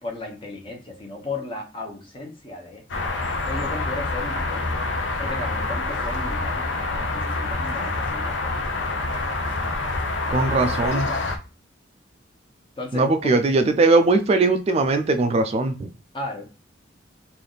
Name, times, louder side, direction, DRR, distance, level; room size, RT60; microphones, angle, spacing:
voice 1, 0.0-2.8 3.4-4.8 5.2-8.6 10.3-11.4 12.8-13.3 16.1-16.5, left 2 dB, 30° left, 2 dB, 0.9 m, -35 dB
sound 1, 2.9-11.4, left 2 dB, 80° left, 0.6 m, -27 dB
voice 2, 10.3-11.0 12.9-15.9, right 3 dB, 35° right, 8 dB, 0.3 m, -20 dB
3.3 x 2.5 x 3.9 m, 0.33 s
head